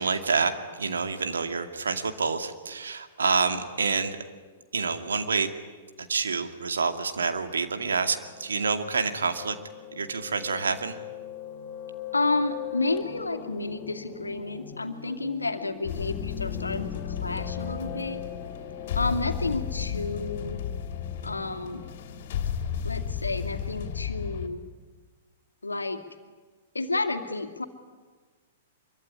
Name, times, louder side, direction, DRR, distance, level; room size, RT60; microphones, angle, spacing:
voice 1, 0.0-4.2 4.7-5.5 6.0-9.6 9.9-11.0, right 5 dB, 70° right, 7 dB, 2.3 m, -28 dB
Piano, 7.9-22.4, left 10 dB, 35° left, 3.4 m, -42 dB
voice 2, 12.1-18.2 18.9-20.6 21.2-21.8 22.8-24.6 25.6-26.0 26.7-27.6, left 3 dB, 80° left, 7 dB, 2.4 m, -30 dB
sound 1, 15.8-24.5, left 8 dB, 50° left, 3.2 m, -33 dB
25.5 x 24.0 x 9.8 m, 1.4 s
figure-of-eight pair, 105°, 0 cm